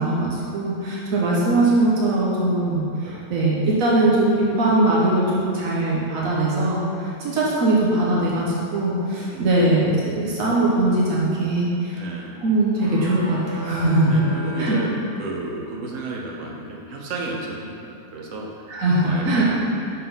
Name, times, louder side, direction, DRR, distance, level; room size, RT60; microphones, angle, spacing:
voice 1, 0.0-2.8 3.3-6.8 7.2-8.4 8.7-12.0 12.4-14.2 14.6-14.8 18.7-19.5, right 2 dB, 90° right, -5 dB, 1.4 m, -20 dB
voice 2, 9.2-9.7 11.9-12.4 14.1-18.7 19.0-19.9, right 2 dB, 75° right, -2 dB, 1.3 m, -33 dB
sound 1, 12.7-15.6, equal, 45° right, 1.1 m, -36 dB
5.7 x 4.5 x 5.5 m, 2.8 s
omnidirectional pair, 1.4 m